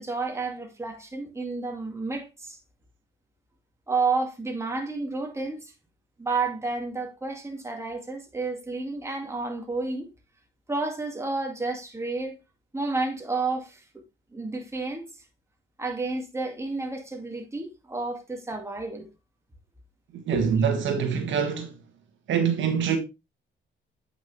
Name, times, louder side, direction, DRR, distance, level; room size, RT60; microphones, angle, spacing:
voice 1, 0.0-2.6 3.9-5.7 6.2-10.1 10.7-12.4 12.7-14.0 14.3-15.1 15.8-19.1 20.3-20.4, right 3 dB, 15° right, 2.3 m, -31 dB
voice 2, 20.3-21.7 22.3-23.0, right 7 dB, 70° right, 1.8 m, -24 dB
8.6 x 6.0 x 3.4 m
cardioid pair, 90°, 20 cm